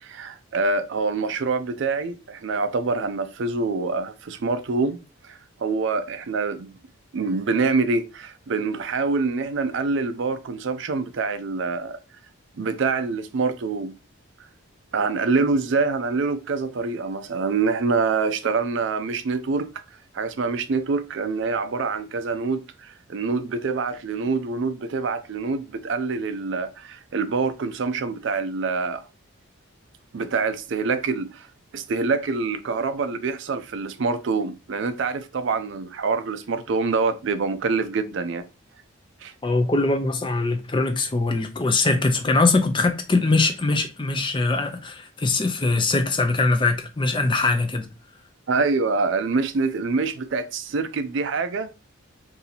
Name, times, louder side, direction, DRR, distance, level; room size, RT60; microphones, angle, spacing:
voice 1, 0.0-5.0 5.2-6.7 7.1-12.0 12.6-13.9 14.9-19.7 20.1-29.0 30.1-31.5 31.7-38.4 39.2-39.3 48.5-51.7, right 4 dB, 60° right, 0.4 m, -25 dB
voice 2, 39.4-47.9, left 3 dB, 25° left, 0.5 m, -22 dB
2.8 x 2.7 x 4.0 m
head